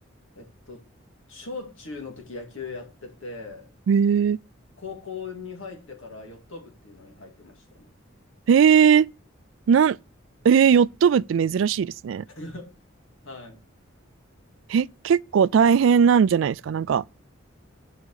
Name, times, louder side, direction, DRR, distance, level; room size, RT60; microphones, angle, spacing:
voice 1, 0.4-0.9 1.3-3.7 4.8-7.9 12.3-12.8 13.2-13.6, left 4 dB, 75° left, 2.2 m, -39 dB
voice 2, 3.9-4.4 8.5-9.1 9.7-10.0 10.4-12.2 14.7-17.0, right 7 dB, 70° right, 0.3 m, -18 dB
7.2 x 5.1 x 6.4 m
head